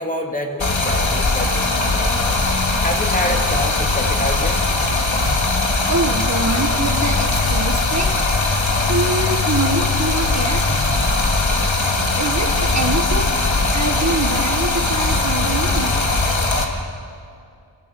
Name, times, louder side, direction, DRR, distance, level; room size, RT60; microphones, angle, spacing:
voice 1, 0.0-2.4 2.8-4.6, equal, 15° left, 1 dB, 2.4 m, -27 dB
Stream, 0.6-16.6, left 3 dB, 70° left, 2.5 m, -19 dB
voice 2, 5.9-10.7 12.1-15.9, right 2 dB, 35° right, 4 dB, 1.4 m, -25 dB
27.0 x 17.5 x 6.9 m, 2.4 s
wide cardioid pair, 70°, 48 cm